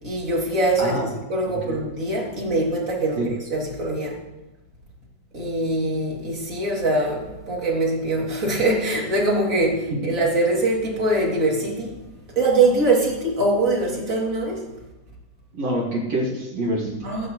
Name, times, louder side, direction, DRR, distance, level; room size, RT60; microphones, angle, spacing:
voice 1, 0.0-3.2 3.5-4.2 5.3-11.9 12.3-14.6 17.0-17.3, right 2 dB, 25° right, -3 dB, 1.9 m, -23 dB
voice 2, 0.8-1.1 1.5-1.8 3.2-3.3 15.5-17.0, right 1 dB, 45° right, -3 dB, 2.4 m, -26 dB
17.5 x 15.5 x 3.2 m, 1.0 s
omnidirectional pair, 6.0 m